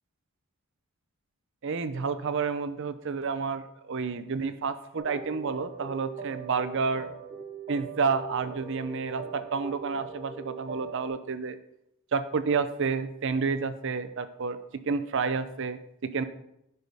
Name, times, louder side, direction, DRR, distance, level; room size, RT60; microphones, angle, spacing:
voice 1, 1.6-7.1 7.7-11.6 12.1-14.6 14.9-16.2, right 5 dB, 60° right, 11 dB, 0.5 m, -30 dB
sound 1, 5.0-11.1, right 6 dB, 30° right, 1.6 m, -41 dB
10.5 x 5.5 x 3.5 m, 0.80 s
head